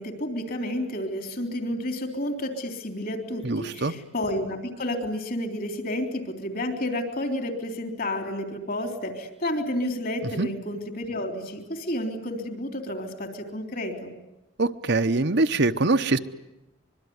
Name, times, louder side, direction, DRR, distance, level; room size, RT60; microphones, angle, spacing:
voice 1, 0.0-14.1, left 1 dB, 45° left, 5 dB, 3.5 m, -31 dB
voice 2, 3.4-3.9 10.4-10.5 14.6-16.2, right 3 dB, 50° right, 8 dB, 0.9 m, -23 dB
25.5 x 22.5 x 9.6 m, 0.95 s
head